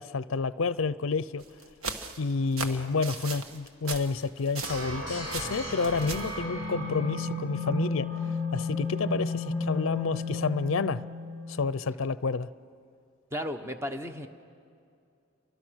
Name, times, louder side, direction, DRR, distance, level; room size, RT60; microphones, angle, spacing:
voice 1, 0.0-1.4 2.2-11.0 11.5-12.5, left 4 dB, 70° left, 0.5 m, -29 dB
sound 1, 1.4-5.0 5.3-6.4, right 4 dB, 80° right, 1.5 m, -38 dB
sound 2, 4.6-11.6, left 2 dB, 60° right, 7.7 m, -33 dB
voice 2, 13.3-14.3, equal, 10° right, 1.0 m, -34 dB
30.0 x 24.5 x 6.4 m
head